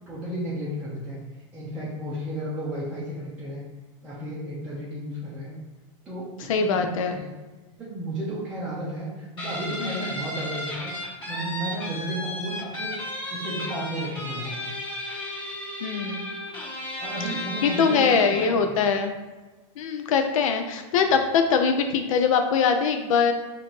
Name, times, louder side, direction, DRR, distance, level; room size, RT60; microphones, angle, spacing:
voice 1, 0.1-1.2 1.5-3.6 4.0-5.6 6.0-7.3 7.8-13.0 13.3-14.7 17.0-18.7, right 1 dB, 10° right, -10 dB, 0.6 m, -33 dB
voice 2, 6.5-7.1 9.8-10.1 15.8-16.3 17.6-19.1 19.8-23.3, left 6 dB, 90° left, 6 dB, 0.5 m, -22 dB
Guitar, 9.4-18.6, left 1 dB, 30° left, 1.5 m, -34 dB
4.2 x 2.6 x 3.0 m, 1.2 s
supercardioid pair, 155°, 17 cm